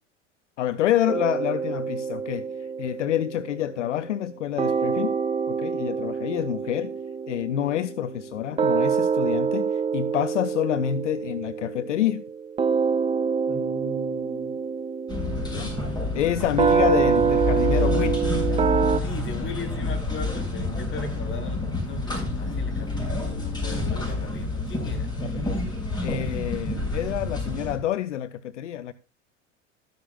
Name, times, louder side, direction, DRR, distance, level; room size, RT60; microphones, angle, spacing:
voice 1, 0.6-5.2 5.5-6.9 7.3-12.2 15.5-15.7 16.1-18.2 18.5-18.7 25.2-25.5 26.0-28.9, left 11 dB, 75° left, 0.6 m, -27 dB
sound 1, 1.1-4.3 4.6-19.0, right 6 dB, 15° right, 0.7 m, -26 dB
voice 2, 13.5-14.5 18.9-25.1, left 2 dB, 35° left, 3.7 m, -38 dB
sound 2, 15.1-27.8, left 2 dB, 10° left, 6.1 m, -28 dB
13.5 x 10.0 x 2.3 m
figure-of-eight pair, 80°, 37 cm